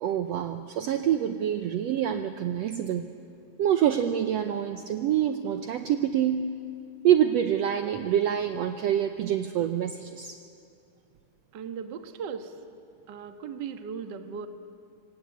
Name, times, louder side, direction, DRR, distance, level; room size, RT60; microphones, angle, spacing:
voice 1, 0.0-3.1 3.6-6.5 7.0-10.4, right 10 dB, 70° right, 8 dB, 1.7 m, -26 dB
voice 2, 11.5-12.6 13.1-14.5, right 6 dB, 50° right, 7 dB, 1.5 m, -37 dB
26.0 x 26.0 x 8.5 m, 2.5 s
omnidirectional pair, 3.5 m